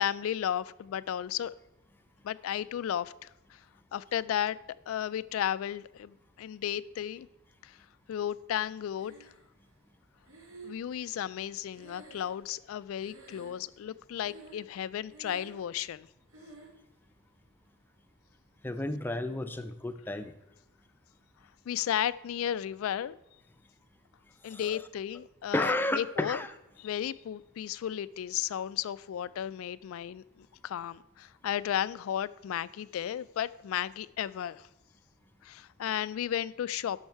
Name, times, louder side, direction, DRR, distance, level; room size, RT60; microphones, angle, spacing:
voice 1, 0.0-1.5 2.2-3.6 3.9-4.6 4.9-7.3 7.6-7.8 8.1-9.3 10.6-16.1 21.7-23.1 24.4-26.4 26.8-34.7 35.4-37.0, left 10 dB, 70° left, 0.3 m, -34 dB
Breathing, 9.0-9.7 10.3-12.7 13.0-13.8 14.2-14.8 15.0-15.7 16.3-16.8, right 3 dB, 75° right, 1.7 m, -51 dB
voice 2, 18.6-20.3 24.5-24.8 25.5-26.5, left 1 dB, 10° left, 0.5 m, -32 dB
11.0 x 6.5 x 4.6 m
head